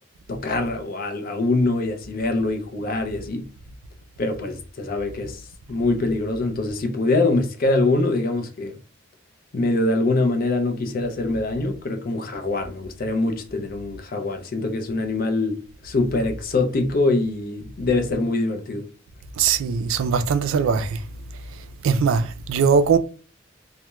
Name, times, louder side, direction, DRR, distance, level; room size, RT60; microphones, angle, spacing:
voice 1, 0.3-3.5 4.2-5.4 5.7-8.8 9.5-18.9, left 2 dB, 45° left, 0.5 m, -24 dB
voice 2, 19.4-21.0 21.8-23.0, right 6 dB, 75° right, 0.3 m, -20 dB
2.2 x 2.1 x 2.9 m
head